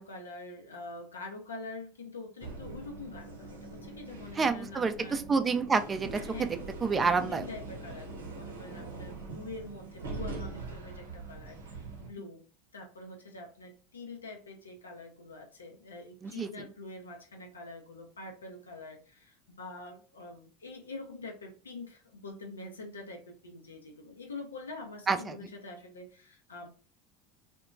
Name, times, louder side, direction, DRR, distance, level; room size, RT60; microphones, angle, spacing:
voice 1, 0.0-5.2 6.3-6.5 7.2-12.4 12.7-26.7, left 2 dB, 85° left, 3 dB, 0.5 m, -45 dB
sound 1, 2.4-12.1, right 3 dB, 85° right, 0.7 m, -43 dB
voice 2, 4.4-6.5 6.8-7.5 16.2-16.5 25.1-25.3, right 4 dB, 25° right, 9 dB, 0.3 m, -28 dB
2.8 x 2.2 x 2.4 m, 0.39 s
hypercardioid pair, 75°, 0 cm